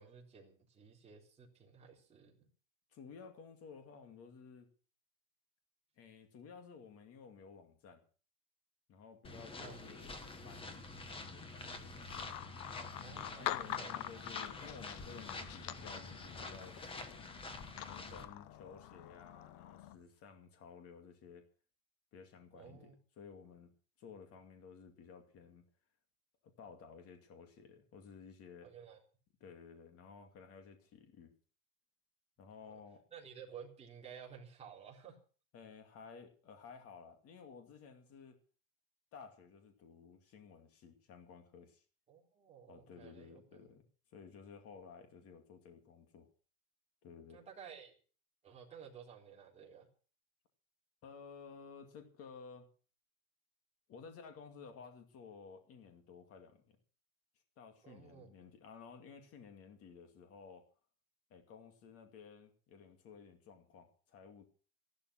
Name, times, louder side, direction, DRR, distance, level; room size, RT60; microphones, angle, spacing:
voice 1, 0.0-2.5 9.6-9.8 13.0-14.3 22.5-23.0 28.6-29.0 32.7-32.8 33.1-35.2 42.1-43.4 47.3-47.9 48.4-49.9 57.8-58.3, right 7 dB, 15° right, -3 dB, 3.7 m, -54 dB
voice 2, 2.9-4.7 6.0-8.0 8.9-10.1 10.4-12.1 13.4-17.3 17.8-21.5 22.1-23.7 24.0-25.7 26.4-28.7 29.4-31.3 32.4-33.0 35.5-38.4 39.1-41.8 42.7-43.8 44.1-46.3 47.0-47.4 51.0-52.7 53.9-56.8 57.6-60.7 61.3-64.4, left 5 dB, 30° left, 6 dB, 2.4 m, -55 dB
sound 1, 9.2-18.3, left 2 dB, 10° left, 1.1 m, -48 dB
sound 2, 12.1-20.0, left 13 dB, 50° left, 0.9 m, -45 dB
14.5 x 12.0 x 6.3 m, 0.40 s
cardioid pair, 175°, 44 cm